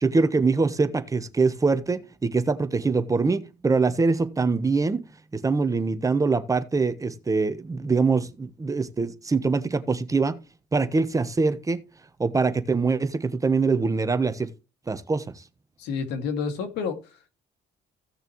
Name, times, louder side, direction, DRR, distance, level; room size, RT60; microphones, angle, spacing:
voice 1, 0.0-5.0 5.3-10.4 10.7-11.8 12.2-14.5 14.9-15.2, right 4 dB, 20° right, 1.1 m, -24 dB
voice 2, 15.8-17.3, left 5 dB, 90° left, 2.2 m, -30 dB
16.0 x 6.5 x 3.1 m
cardioid pair, 110°, 17 cm